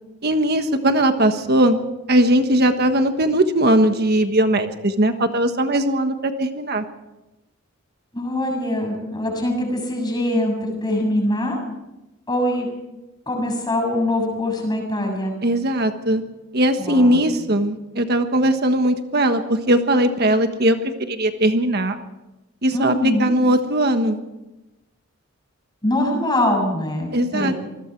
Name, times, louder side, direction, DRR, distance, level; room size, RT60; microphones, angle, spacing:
voice 1, 0.2-1.8 2.1-6.8 15.4-16.2 16.5-22.0 22.6-24.2 27.1-27.6, right 1 dB, 50° right, 7 dB, 1.4 m, -19 dB
voice 2, 8.1-11.6 12.3-12.7 13.3-15.3 16.8-17.2 22.7-23.3 25.8-27.5, left 1 dB, 20° left, 2 dB, 7.0 m, -23 dB
27.5 x 21.0 x 4.7 m, 0.99 s
head